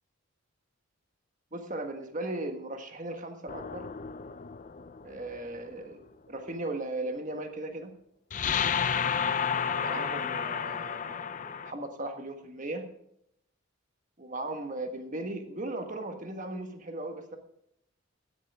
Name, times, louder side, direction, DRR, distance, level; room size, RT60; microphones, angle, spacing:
voice 1, 1.5-3.9 5.0-7.9 9.6-12.8 14.2-17.4, right 2 dB, 35° right, 5 dB, 1.5 m, -37 dB
sound 1, 3.5-5.4 8.3-11.7, left 7 dB, 35° left, 0.5 m, -31 dB
16.0 x 11.0 x 3.6 m, 0.77 s
head